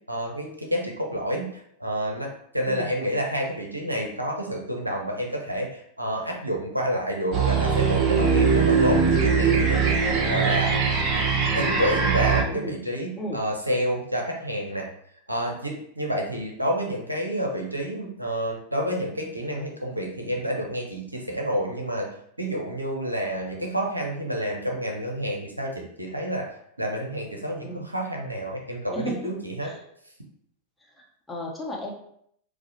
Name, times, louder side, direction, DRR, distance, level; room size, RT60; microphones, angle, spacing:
voice 1, 0.1-1.5 1.8-9.8 10.2-10.7 11.5-14.9 15.3-29.7, equal, 85° right, 0 dB, 0.6 m, -29 dB
sound 1, 7.3-12.4, right 5 dB, 35° right, 0.6 m, -21 dB
voice 2, 31.0-31.9, right 1 dB, 5° left, -3 dB, 0.8 m, -34 dB
4.7 x 2.1 x 2.7 m, 0.70 s
figure-of-eight pair, 90°, 0 cm